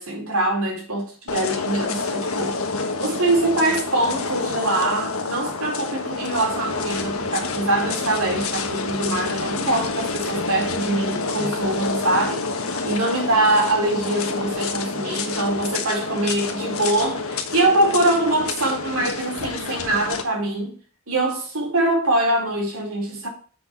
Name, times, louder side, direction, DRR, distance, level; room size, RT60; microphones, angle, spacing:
voice 1, 0.0-2.6 3.0-20.7 21.1-23.3, right 2 dB, 85° right, 4.1 m, -23 dB
sound 1, 1.3-20.2, left 4 dB, 80° left, 1.3 m, -28 dB
6.9 x 6.2 x 5.9 m
head